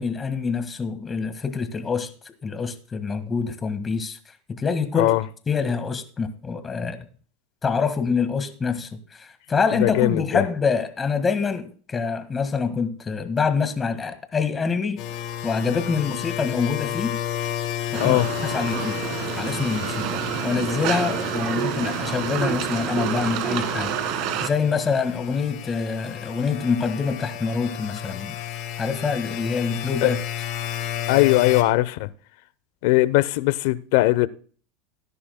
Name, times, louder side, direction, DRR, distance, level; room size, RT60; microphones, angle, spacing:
voice 1, 0.0-4.2 4.5-5.1 5.5-7.0 7.6-15.0 15.4-17.2 17.9-19.0 19.4-28.3 28.8-30.2, left 5 dB, 20° left, 1.7 m, -26 dB
voice 2, 9.8-10.4 18.0-18.3 30.0-30.1 31.1-32.1 32.8-34.3, left 18 dB, 70° left, 0.7 m, -19 dB
sound 1, 15.0-31.6, left 10 dB, 50° left, 3.5 m, -32 dB
sound 2, 17.9-24.5, right 10 dB, 60° right, 1.7 m, -28 dB
17.0 x 10.0 x 2.2 m
supercardioid pair, 115°, 0 cm